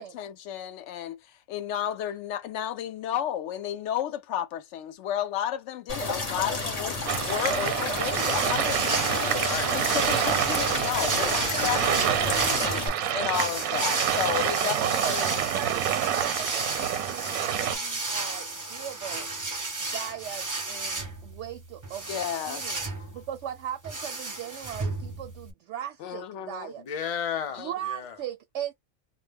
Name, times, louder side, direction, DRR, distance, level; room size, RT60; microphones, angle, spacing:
voice 1, 0.0-9.4 9.7-15.4 22.1-23.1 26.0-26.7 27.5-27.7, left 10 dB, 65° left, 0.8 m, -33 dB
sound 1, 5.9-12.9, left 2 dB, 30° left, 0.9 m, -31 dB
sound 2, 7.1-17.8, right 10 dB, 85° right, 1.1 m, -28 dB
sound 3, 8.1-25.5, right 3 dB, 30° right, 0.4 m, -33 dB
voice 2, 9.3-9.8 10.9-12.0 26.8-28.2, left 7 dB, 50° left, 0.4 m, -35 dB
voice 3, 14.7-19.3 19.8-22.1 22.4-22.8 23.1-26.8 27.6-28.7, right 10 dB, 65° right, 0.8 m, -38 dB
2.2 x 2.1 x 3.4 m
omnidirectional pair, 1.4 m